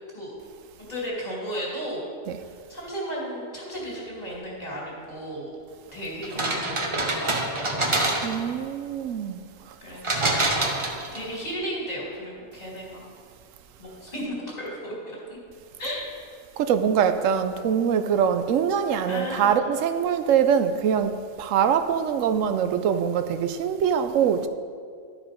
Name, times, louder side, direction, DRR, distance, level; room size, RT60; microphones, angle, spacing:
voice 1, 0.8-2.0 2.4-5.5 5.9-8.0 9.8-10.3 11.1-13.1 13.8-15.4 15.8-16.0 19.1-19.8, equal, 30° left, 2.5 m, -34 dB
sound 1, 6.2-8.5 10.0-11.3, right 2 dB, 25° right, 0.8 m, -26 dB
voice 2, 8.2-9.4 16.6-24.5, right 8 dB, 75° right, 0.9 m, -23 dB
12.0 x 4.9 x 5.1 m
omnidirectional pair, 1.4 m